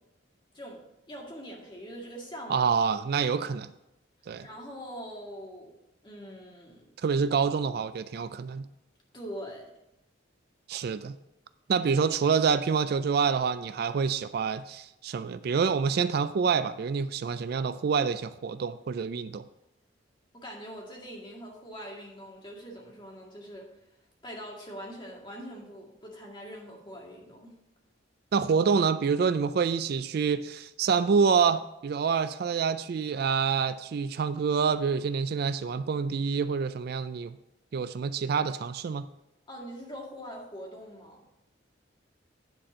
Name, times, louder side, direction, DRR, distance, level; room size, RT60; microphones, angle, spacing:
voice 1, 0.5-2.7 4.4-5.7 6.0-6.9 9.1-9.7 20.3-23.7 24.2-27.5 39.5-41.2, equal, 25° left, -2 dB, 2.0 m, -43 dB
voice 2, 2.5-3.7 4.3-4.5 7.0-8.7 10.7-11.2 11.7-19.4 28.3-37.4 37.7-39.1, right 6 dB, 55° right, 13 dB, 0.3 m, -27 dB
10.0 x 4.3 x 6.2 m, 0.88 s
head